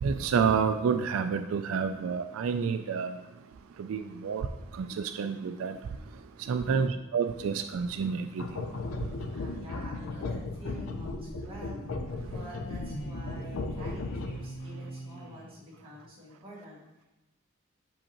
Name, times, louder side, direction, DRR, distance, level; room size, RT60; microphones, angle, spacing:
voice 1, 0.0-3.1 3.8-4.5 4.8-5.8 6.5-8.4, right 6 dB, 90° right, 0.3 m, -29 dB
voice 2, 6.7-7.0 9.3-12.0 12.3-16.8, equal, 25° right, 1.8 m, -47 dB
sound 1, 8.4-14.6, left 3 dB, 85° left, 0.5 m, -36 dB
sound 2, 8.5-16.0, right 1 dB, 55° left, 1.1 m, -45 dB
6.5 x 5.3 x 2.9 m
head